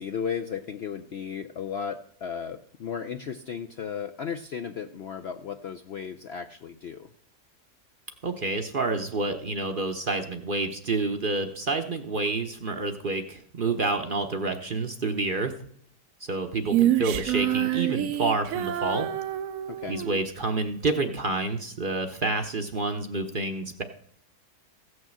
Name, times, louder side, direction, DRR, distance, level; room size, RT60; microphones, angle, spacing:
voice 1, 0.0-7.1 19.7-20.0, left 7 dB, 60° left, 6 dB, 0.6 m, -35 dB
voice 2, 8.2-15.5 16.2-19.1 19.9-23.8, right 3 dB, 45° right, 6 dB, 0.8 m, -28 dB
Female singing, 16.7-20.2, right 12 dB, 70° right, 1.0 m, -27 dB
15.0 x 6.3 x 7.5 m, 0.65 s
omnidirectional pair, 1.7 m